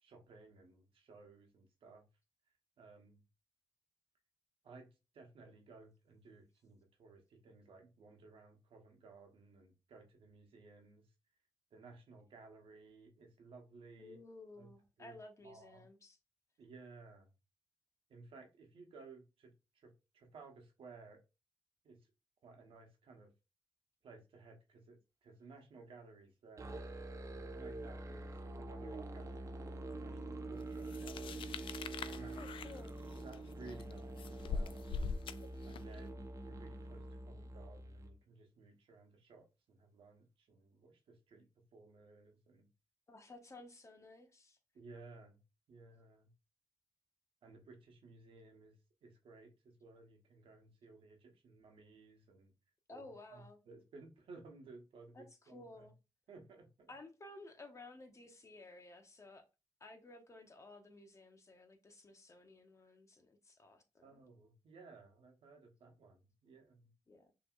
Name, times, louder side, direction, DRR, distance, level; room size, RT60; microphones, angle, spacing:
voice 1, 0.0-2.1 2.8-3.2 4.6-4.9 5.1-11.1 11.7-14.2 14.6-14.7 15.0-15.9 16.6-17.3 18.1-21.2 21.8-22.0 22.4-23.3 24.0-26.8 27.3-31.5 32.1-32.4 33.2-34.9 35.6-42.7 44.7-45.4 45.7-46.3 47.4-52.5 52.9-53.0 53.3-55.9 56.3-56.9 64.0-66.9, right 3 dB, 80° right, 1.2 m, -58 dB
voice 2, 14.0-16.2 32.3-33.0 43.1-44.6 52.9-53.6 55.1-55.9 56.9-59.4 59.8-64.2 67.1-67.3, left 2 dB, 35° left, 1.0 m, -55 dB
Musical instrument, 26.6-38.2, right 2 dB, 35° right, 0.6 m, -46 dB
sound 1, 30.9-36.0, left 5 dB, 70° left, 0.4 m, -43 dB
5.9 x 3.1 x 2.5 m
cardioid pair, 85°, 9 cm